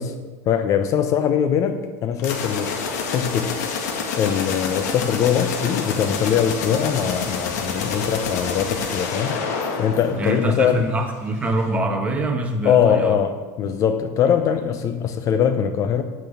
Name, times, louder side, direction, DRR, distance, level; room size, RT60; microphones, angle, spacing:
voice 1, 0.0-2.8 3.1-3.6 4.2-9.4 9.8-10.9 12.6-16.0, left 8 dB, 40° left, 0.7 m, -22 dB
sound 1, 2.2-10.8, left 5 dB, 85° left, 1.9 m, -28 dB
voice 2, 10.1-13.2, right 1 dB, 15° right, 1.4 m, -24 dB
9.2 x 9.1 x 5.5 m
supercardioid pair, 140°, 9 cm